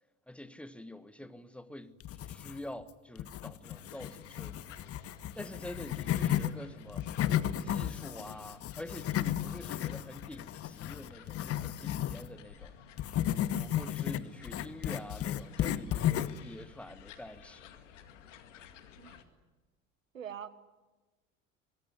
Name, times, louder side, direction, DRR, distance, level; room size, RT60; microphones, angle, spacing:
voice 1, 0.3-2.0 2.2-4.8 5.3-7.1 7.6-12.7 13.6-17.7, left 1 dB, 5° left, 1.5 m, -46 dB
sound 1, 2.0-2.8 3.2-6.5 6.9-12.3 13.0-16.5, left 11 dB, 35° left, 1.1 m, -33 dB
sound 2, 3.6-19.2, left 8 dB, 70° left, 2.2 m, -54 dB
voice 2, 20.1-20.5, right 9 dB, 80° right, 1.3 m, -43 dB
24.5 x 20.5 x 9.6 m
figure-of-eight pair, 65°, 39 cm